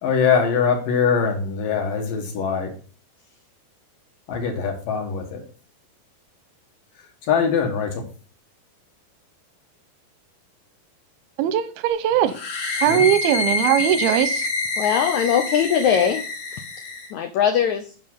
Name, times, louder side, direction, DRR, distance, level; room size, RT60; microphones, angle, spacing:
voice 1, 0.0-2.7 4.3-5.4 6.9-8.1 12.9-13.1, left 6 dB, 65° left, 3.0 m, -22 dB
voice 2, 11.4-12.4 12.8-14.5, right 11 dB, 90° right, 2.5 m, -20 dB
sound 1, 12.3-17.1, left 3 dB, 50° left, 3.0 m, -27 dB
voice 3, 14.8-16.2 17.1-17.9, left 8 dB, 90° left, 1.6 m, -20 dB
9.2 x 5.5 x 5.5 m
omnidirectional pair, 4.4 m